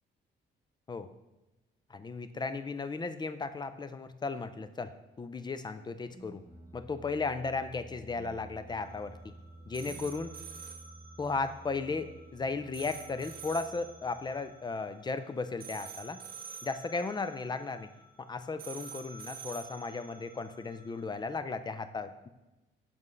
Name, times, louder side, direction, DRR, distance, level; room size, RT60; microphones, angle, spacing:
voice 1, 1.9-4.9 5.2-6.4 6.7-9.3 9.7-10.3 11.2-16.2 16.6-17.9 18.2-22.3, left 4 dB, 20° left, 12 dB, 0.4 m, -35 dB
sound 1, 5.9-14.7, right 1 dB, 20° right, 1.5 m, -52 dB
sound 2, 8.7-21.1, right 6 dB, 45° right, 0.9 m, -49 dB
7.4 x 5.3 x 3.2 m, 1.0 s
cardioid pair, 90°, 20 cm